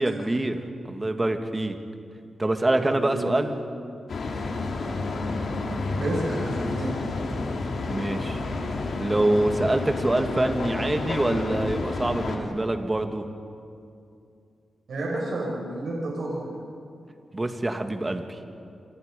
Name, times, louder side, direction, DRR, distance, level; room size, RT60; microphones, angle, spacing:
voice 1, 0.0-1.8 2.4-3.6 7.8-8.4 9.0-13.2 17.3-18.2, right 1 dB, 25° right, 6 dB, 2.1 m, -25 dB
voice 2, 2.8-3.3 6.0-7.0 14.9-16.5, right 1 dB, 75° right, -3 dB, 6.3 m, -30 dB
sound 1, 4.1-12.4, left 3 dB, 70° left, 3.5 m, -30 dB
28.0 x 27.0 x 5.3 m, 2.5 s
cardioid pair, 80°, 0 cm